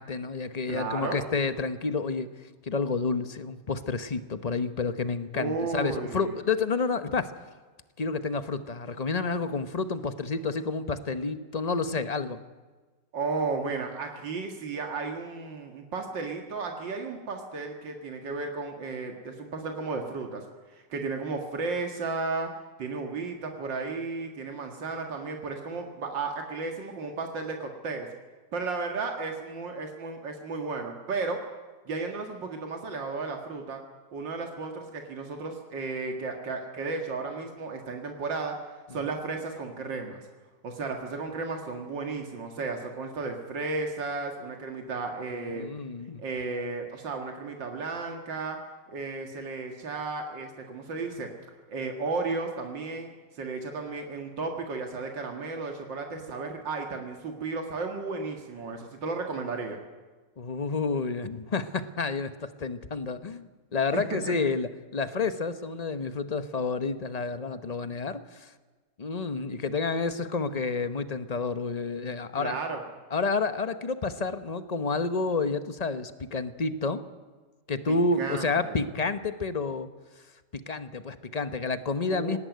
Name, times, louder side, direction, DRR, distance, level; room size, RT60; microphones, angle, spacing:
voice 1, 0.0-2.3 2.6-7.3 8.0-12.4 45.3-46.2 60.4-68.5 69.0-72.6 73.1-77.0 77.7-79.9 80.7-82.4, left 4 dB, 30° left, 11 dB, 0.8 m, -30 dB
voice 2, 0.7-1.2 5.3-6.4 13.1-20.4 20.7-22.5 22.8-28.1 28.5-31.4 31.9-33.8 34.1-38.6 38.9-40.2 40.6-45.7 46.2-48.6 48.9-51.3 51.7-59.8 63.9-64.3 72.4-72.8 77.9-78.8 82.1-82.4, right 4 dB, 90° right, 3 dB, 2.6 m, -34 dB
18.5 x 18.0 x 9.3 m, 1.3 s
omnidirectional pair, 1.9 m